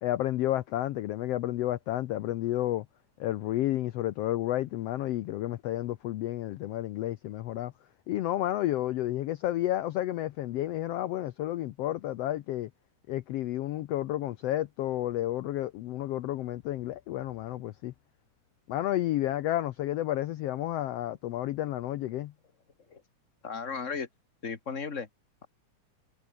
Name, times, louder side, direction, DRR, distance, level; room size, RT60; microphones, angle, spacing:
voice 1, 0.0-2.8 3.2-7.7 8.1-12.7 13.1-17.9 18.7-22.3, left 14 dB, 90° left, 1.4 m, -31 dB
voice 2, 23.4-24.1 24.4-25.1, left 5 dB, 25° left, 2.2 m, -35 dB
omnidirectional pair, 3.7 m